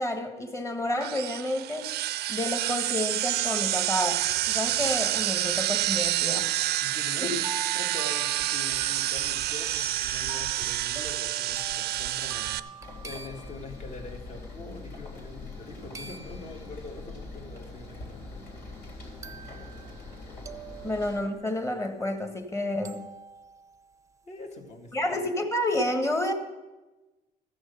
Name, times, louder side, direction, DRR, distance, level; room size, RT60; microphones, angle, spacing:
voice 1, 0.0-1.9 2.3-6.5 7.2-7.3 20.8-23.1 24.9-26.3, left 1 dB, 15° left, 6 dB, 1.5 m, -30 dB
sound 1, 1.0-12.6, right 14 dB, 70° right, 0.5 m, -28 dB
sound 2, 6.6-14.2 15.9-16.9 17.6-17.7 19.2-20.2 20.5-22.2 22.8-24.2, right 5 dB, 20° right, 0.6 m, -44 dB
voice 2, 6.8-18.4 20.9-21.0 24.3-25.1, left 2 dB, 45° left, 3 dB, 1.7 m, -44 dB
sound 3, 12.8-21.2, left 3 dB, 70° left, 3.5 m, -43 dB
14.0 x 6.3 x 6.8 m, 1.1 s
cardioid pair, 110°, 17 cm